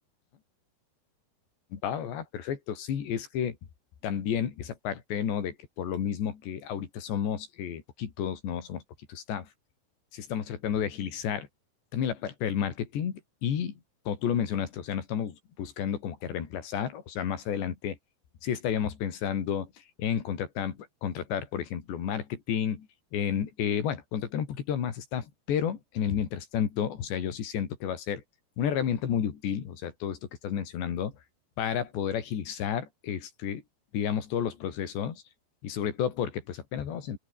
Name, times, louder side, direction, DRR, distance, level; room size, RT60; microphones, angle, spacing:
voice 1, 1.7-3.6 4.0-8.8 9.1-9.5 10.1-11.5 11.9-13.7 14.1-18.0 18.4-19.7 20.0-22.9 23.1-28.2 28.6-31.1 31.6-33.6 33.9-35.2 35.6-37.2, left 8 dB, 90° left, 5.4 m, -31 dB
open air
omnidirectional pair, 4.9 m